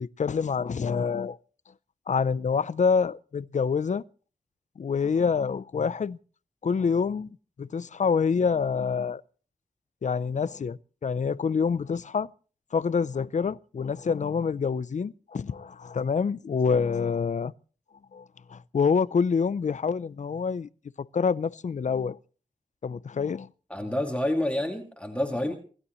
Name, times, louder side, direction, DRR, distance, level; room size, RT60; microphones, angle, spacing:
voice 1, 0.0-1.4 2.1-4.0 4.8-6.2 6.6-7.3 7.6-9.2 10.0-12.3 12.7-17.5 18.1-18.2 18.5-20.7 21.0-22.2 22.8-23.5, left 5 dB, 60° left, 0.6 m, -26 dB
voice 2, 23.7-25.6, left 1 dB, 10° left, 2.3 m, -28 dB
27.0 x 12.5 x 3.1 m
wide cardioid pair, 90°, 14 cm